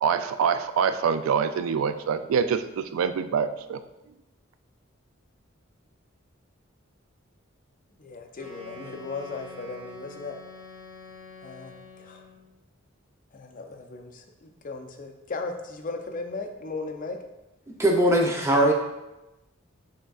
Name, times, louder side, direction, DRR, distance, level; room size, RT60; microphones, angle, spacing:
voice 1, 0.0-3.8, right 6 dB, 80° right, 11 dB, 0.3 m, -25 dB
voice 2, 8.0-10.4 11.4-12.3 13.3-17.2, left 3 dB, 40° left, 4 dB, 0.5 m, -37 dB
Wind instrument woodwind instrument, 8.3-12.4, left 2 dB, 30° right, 1.1 m, -46 dB
voice 3, 17.8-18.7, right 1 dB, 15° right, 0 dB, 0.6 m, -20 dB
6.5 x 3.5 x 2.4 m, 0.97 s
head